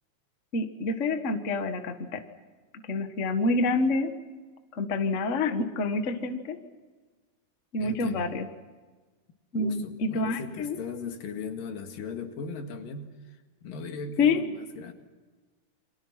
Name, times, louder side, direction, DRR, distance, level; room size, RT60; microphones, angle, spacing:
voice 1, 0.5-2.2 2.9-4.1 4.7-6.6 7.7-8.5 9.5-10.8 14.2-14.4, left 3 dB, 35° left, 7 dB, 1.1 m, -27 dB
voice 2, 7.8-8.3 9.5-14.9, left 5 dB, 85° left, 5 dB, 3.6 m, -38 dB
29.5 x 23.5 x 5.8 m, 1.4 s
omnidirectional pair, 3.8 m